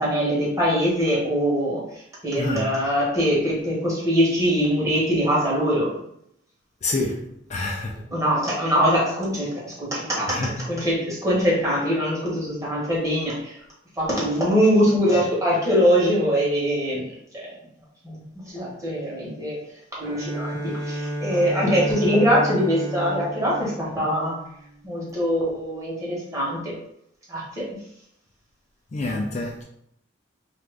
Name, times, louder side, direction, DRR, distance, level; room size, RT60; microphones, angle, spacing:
voice 1, 0.0-5.9 8.1-10.4 10.7-13.6 14.0-17.0 17.3-17.5 18.0-18.2 18.5-19.6 19.9-24.4 24.8-26.7 27.3-27.7, equal, 15° right, 1.1 m, -22 dB
voice 2, 2.4-2.8 6.8-8.0 10.3-10.7 28.9-29.6, left 2 dB, 35° left, 0.4 m, -27 dB
Bowed string instrument, 20.0-24.8, right 1 dB, 65° right, 0.7 m, -31 dB
2.8 x 2.5 x 3.4 m
head